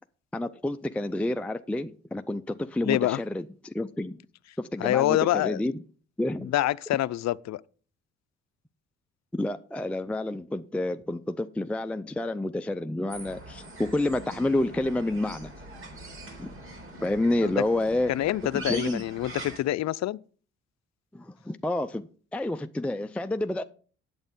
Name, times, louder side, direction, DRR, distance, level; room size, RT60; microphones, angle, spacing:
voice 1, 0.3-4.2 4.6-5.7 6.2-6.5 9.3-15.5 16.4-16.5 17.0-18.1 18.5-19.0 21.1-23.6, left 1 dB, 5° left, 0.4 m, -29 dB
voice 2, 2.8-3.2 4.8-5.6 6.4-7.6 17.4-17.5 18.1-20.2, left 14 dB, 60° left, 0.5 m, -26 dB
sound 1, 13.1-19.6, right 2 dB, 45° right, 4.2 m, -42 dB
8.8 x 8.0 x 5.3 m
cardioid pair, 90°, 30 cm